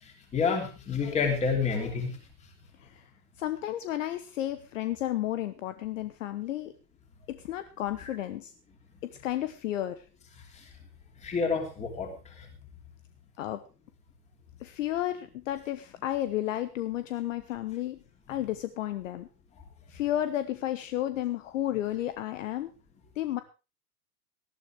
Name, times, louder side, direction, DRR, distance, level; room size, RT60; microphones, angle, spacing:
voice 1, 0.0-2.2 8.0-8.1 10.5-10.6 11.2-12.5, left 5 dB, 15° left, 3 dB, 3.2 m, -29 dB
voice 2, 3.4-6.7 7.3-8.5 9.0-10.0 13.4-13.6 14.6-18.0 18.3-19.3 19.9-22.7 23.2-23.4, left 13 dB, 50° left, 11 dB, 1.1 m, -32 dB
18.5 x 13.0 x 3.4 m, 0.31 s
supercardioid pair, 180°, 50 cm